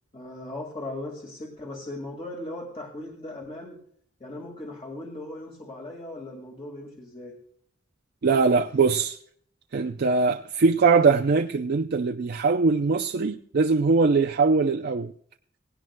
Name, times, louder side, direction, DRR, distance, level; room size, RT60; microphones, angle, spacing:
voice 1, 0.1-3.8 4.2-7.3, left 1 dB, 30° left, 1.9 m, -38 dB
voice 2, 8.2-9.2 9.7-15.1, right 4 dB, 55° right, 0.5 m, -21 dB
19.0 x 17.0 x 2.2 m
head